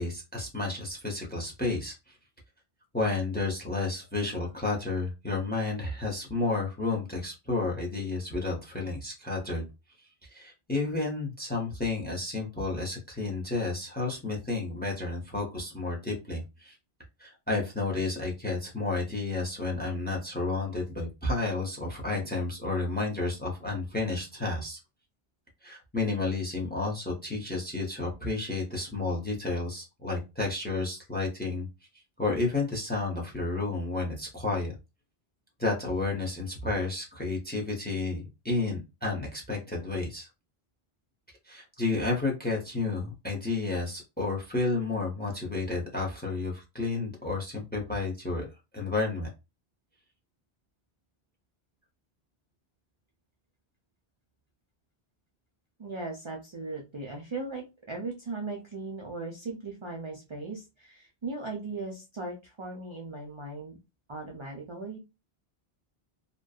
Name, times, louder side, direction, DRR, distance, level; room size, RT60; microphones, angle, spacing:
voice 1, 0.0-2.1 2.9-9.7 10.3-16.8 17.2-24.8 25.6-31.7 32.2-34.7 35.6-40.3 41.5-48.5 48.7-49.3, left 3 dB, 15° left, 1 dB, 0.5 m, -31 dB
voice 2, 55.8-63.8 64.1-65.0, right 3 dB, 50° right, 1 dB, 0.3 m, -38 dB
2.6 x 2.1 x 2.3 m, 0.26 s
omnidirectional pair, 1.1 m